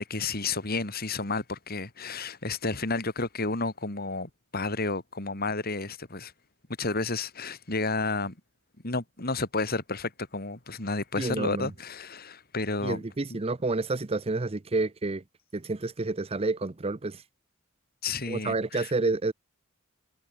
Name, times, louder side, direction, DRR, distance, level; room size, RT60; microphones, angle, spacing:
voice 1, 0.0-6.3 6.8-8.4 8.8-13.0 18.0-18.9, left 3 dB, 50° left, 3.3 m, -31 dB
voice 2, 11.2-11.7 12.8-15.2 15.5-17.2 18.3-19.3, right 3 dB, 30° right, 0.7 m, -29 dB
head